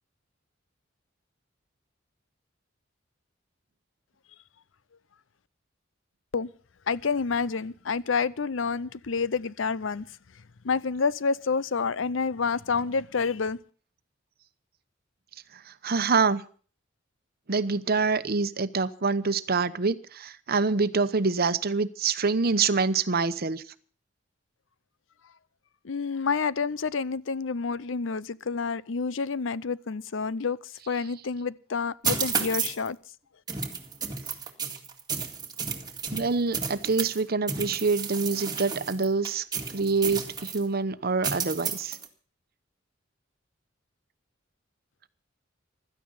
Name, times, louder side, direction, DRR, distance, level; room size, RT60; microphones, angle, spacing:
voice 1, 6.9-10.1 10.6-13.6 25.8-30.6 30.9-33.0, left 5 dB, 80° left, 0.6 m, -28 dB
voice 2, 15.5-16.4 17.5-23.6 36.1-39.5 39.7-42.0, right 4 dB, 50° right, 0.9 m, -26 dB
sound 1, 32.0-32.9 33.5-37.2 37.5-40.6 41.2-42.1, right 6 dB, 20° right, 2.1 m, -32 dB
16.0 x 13.0 x 5.6 m
head